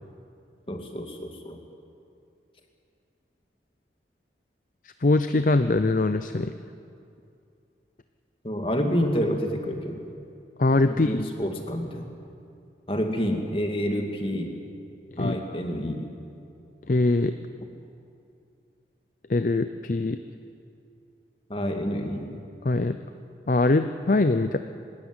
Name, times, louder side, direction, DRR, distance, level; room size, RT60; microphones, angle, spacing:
voice 1, 0.7-1.6 8.4-10.0 11.0-12.1 12.9-14.5 15.2-16.0 21.5-22.4, equal, 30° left, 3 dB, 2.1 m, -28 dB
voice 2, 5.0-6.5 10.6-11.2 15.1-15.4 16.9-17.3 19.3-20.2 22.6-23.0 23.5-24.6, left 2 dB, 50° left, 10 dB, 0.6 m, -22 dB
24.0 x 13.0 x 9.8 m, 2.5 s
head